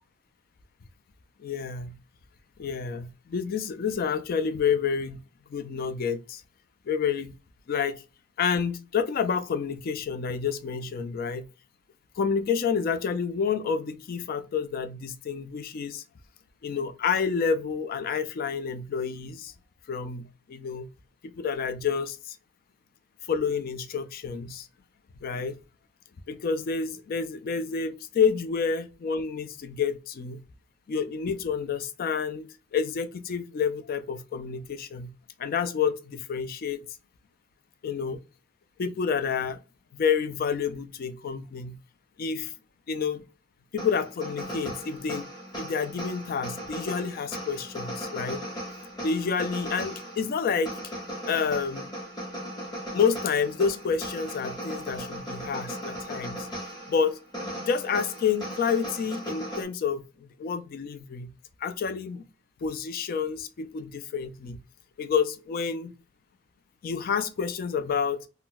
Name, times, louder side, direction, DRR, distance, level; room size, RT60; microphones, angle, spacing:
voice 1, 1.4-2.0 2.6-5.2 5.5-6.4 6.9-7.3 7.7-8.0 8.4-11.5 12.2-16.0 16.6-19.5 19.9-20.9 21.2-22.4 23.3-24.7 25.2-25.5 26.3-30.4 30.9-35.1 35.4-36.8 37.8-38.2 38.8-39.6 40.0-41.8 42.2-42.5 42.9-43.2 43.7-45.3 45.6-48.4 49.0-50.7 51.3-51.9 52.9-56.5 56.9-57.2 57.6-60.0 60.4-61.3 61.6-62.2 62.6-64.6 65.0-65.9 66.8-68.3, left 6 dB, 45° left, 0.3 m, -29 dB
sound 1, 43.8-59.6, equal, 20° left, 0.9 m, -37 dB
2.2 x 2.1 x 3.8 m
head